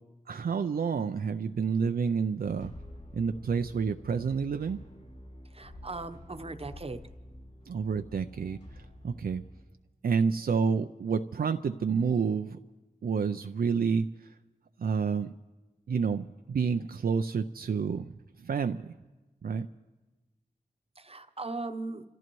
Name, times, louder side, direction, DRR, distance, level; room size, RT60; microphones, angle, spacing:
voice 1, 0.3-2.7 3.1-4.8 7.7-8.6 9.0-9.4 10.0-12.6 13.0-14.1 14.8-15.3 15.9-18.1 18.4-18.9 19.4-19.7, right 6 dB, 75° right, 8 dB, 0.4 m, -29 dB
sound 1, 2.4-9.6, left 1 dB, 50° left, 6.3 m, -49 dB
voice 2, 5.5-7.0 21.0-22.0, right 3 dB, 40° right, 8 dB, 0.9 m, -38 dB
29.5 x 14.0 x 3.1 m, 1.2 s
wide cardioid pair, 70°, 16 cm